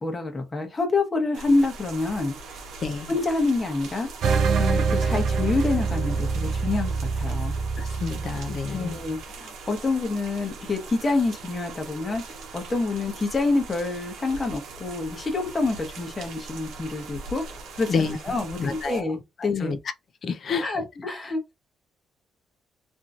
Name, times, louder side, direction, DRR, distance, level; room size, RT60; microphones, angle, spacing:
voice 1, 0.0-2.7 3.1-4.1 4.6-7.5 8.7-17.4 17.8-19.7 20.5-21.6, left 3 dB, 20° left, 1.0 m, -27 dB
sound 1, 1.3-19.0, right 3 dB, 90° right, 0.8 m, -41 dB
voice 2, 2.8-3.1 7.8-9.0 17.9-18.2 18.6-19.8 20.2-20.7 21.0-21.1, left 5 dB, 45° left, 0.4 m, -29 dB
sound 2, 4.2-9.1, right 5 dB, 70° right, 0.4 m, -25 dB
2.9 x 2.6 x 2.4 m
cardioid pair, 135°, 0 cm